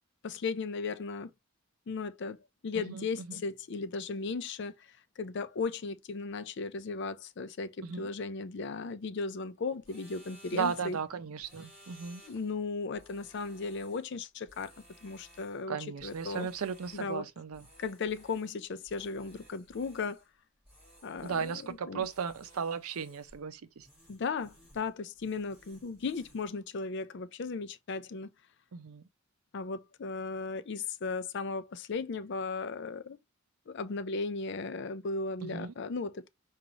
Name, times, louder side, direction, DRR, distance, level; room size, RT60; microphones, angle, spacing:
voice 1, 0.2-1.3 1.9-2.4 2.6-4.9 5.2-11.0 12.3-14.7 15.0-16.5 16.9-17.3 17.8-20.2 21.0-22.0 24.1-28.3 29.5-33.2 33.7-36.3, left 4 dB, 50° left, 0.4 m, -36 dB
voice 2, 2.7-3.1 7.8-8.1 10.5-12.2 15.7-17.7 21.2-23.9 28.7-29.0 35.4-35.7, right 6 dB, 80° right, 0.5 m, -36 dB
sound 1, 9.8-11.0 11.4-12.6 12.9-14.1 14.5-15.6 16.0-17.2 17.5-18.6 18.9-20.3 20.6-21.7 22.0-23.4 23.8-24.9 25.2-26.5, equal, 5° right, 3.0 m, -58 dB
5.0 x 2.4 x 3.0 m
head